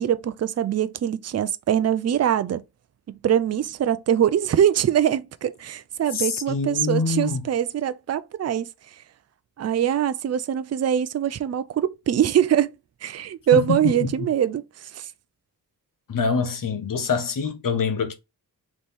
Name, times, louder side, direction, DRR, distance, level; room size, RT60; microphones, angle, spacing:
voice 1, 0.0-2.6 3.1-8.7 9.6-12.7 13.0-15.1, right 9 dB, 45° right, 0.4 m, -23 dB
voice 2, 6.1-7.4 13.5-14.1 16.1-18.1, left 5 dB, 60° left, 0.9 m, -25 dB
3.4 x 3.1 x 4.1 m
wide cardioid pair, 80°, 37 cm